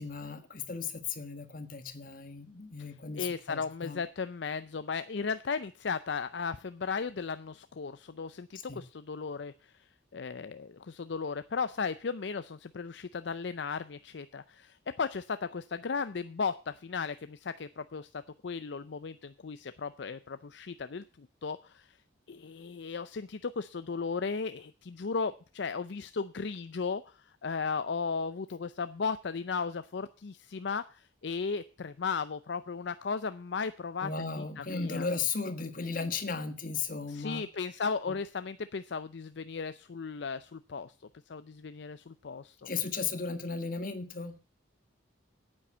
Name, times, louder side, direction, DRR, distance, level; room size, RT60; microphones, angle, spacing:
voice 1, 0.0-4.0 8.5-8.8 34.0-37.4 38.1-38.2 42.6-44.4, left 5 dB, 45° left, 8 dB, 1.5 m, -36 dB
voice 2, 3.2-9.7 10.1-21.9 22.3-27.0 27.4-35.1 37.1-40.9 41.3-42.7, left 5 dB, 65° left, 12 dB, 0.5 m, -36 dB
9.3 x 8.8 x 6.8 m, 0.37 s
head